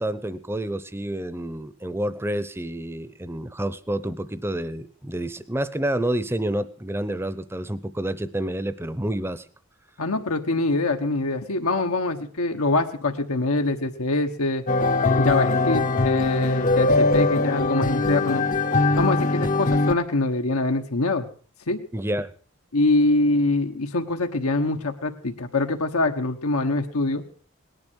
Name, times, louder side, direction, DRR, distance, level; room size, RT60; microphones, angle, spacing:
voice 1, 0.0-9.4 21.9-22.3, right 1 dB, 10° right, 15 dB, 0.7 m, -29 dB
voice 2, 10.0-14.6 15.2-18.5 19.0-21.2 21.7-21.8 22.7-27.2, left 2 dB, 90° left, 5 dB, 1.3 m, -24 dB
sound 1, 14.7-19.9, left 2 dB, 35° left, 0.6 m, -21 dB
18.5 x 11.0 x 6.3 m, 0.43 s
head